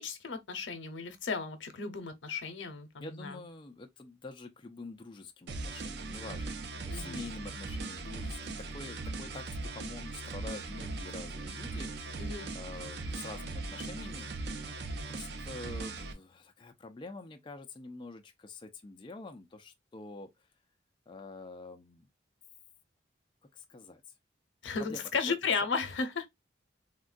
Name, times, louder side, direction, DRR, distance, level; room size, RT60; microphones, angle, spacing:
voice 1, 0.0-3.4 6.9-7.2 12.2-12.5 24.6-26.3, left 5 dB, 85° left, 0.7 m, -34 dB
voice 2, 3.0-12.2 12.5-14.3 14.8-20.3 21.1-22.0 23.5-24.0 24.8-25.0, left 3 dB, 25° left, 0.3 m, -46 dB
sound 1, 5.5-16.1, right 3 dB, 60° right, 0.5 m, -39 dB
3.5 x 2.2 x 2.4 m
head